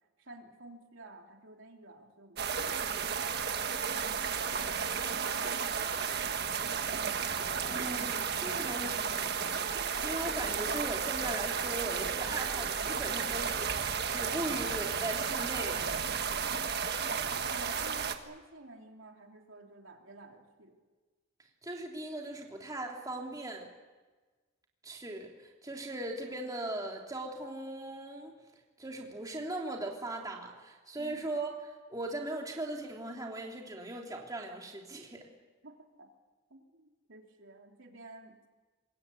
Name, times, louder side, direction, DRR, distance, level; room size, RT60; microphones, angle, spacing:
voice 1, 0.2-3.4 3.8-6.6 17.3-20.8 30.9-31.4 35.6-36.1 36.5-36.8 37.1-38.4, right 2 dB, 70° right, 2 dB, 3.3 m, -52 dB
sound 1, 2.4-18.2, right 6 dB, 50° right, 1.5 m, -33 dB
voice 2, 7.7-9.0 9.4-15.9 21.6-23.7 24.8-28.3 28.8-35.3, right 1 dB, 20° right, 0 dB, 3.0 m, -39 dB
26.0 x 21.5 x 8.5 m, 1.3 s
head